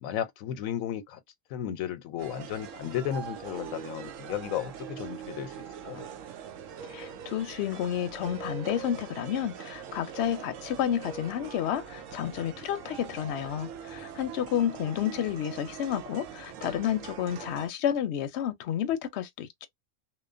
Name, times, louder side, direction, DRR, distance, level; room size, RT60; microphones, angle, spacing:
voice 1, 0.0-1.2 1.5-6.1, left 10 dB, 90° left, 1.0 m, -34 dB
sound 1, 2.2-17.7, right 8 dB, 75° right, 1.0 m, -42 dB
voice 2, 6.8-19.7, left 10 dB, 65° left, 0.8 m, -31 dB
3.0 x 2.1 x 2.4 m
omnidirectional pair, 1.4 m